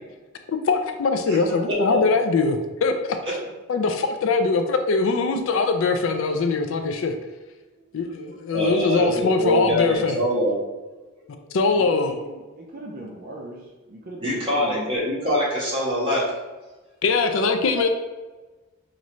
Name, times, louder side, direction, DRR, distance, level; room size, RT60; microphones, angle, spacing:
voice 1, 0.5-3.2 3.7-7.2 8.0-10.2 11.5-12.2 17.0-17.9, left 4 dB, 60° left, 7 dB, 0.4 m, -22 dB
voice 2, 1.3-2.0 3.2-3.3 8.5-10.5 14.2-16.2 17.8-17.9, equal, 25° right, -7 dB, 1.4 m, -24 dB
voice 3, 11.7-14.9, right 1 dB, 40° right, -1 dB, 0.5 m, -39 dB
5.3 x 2.5 x 3.0 m, 1.2 s
head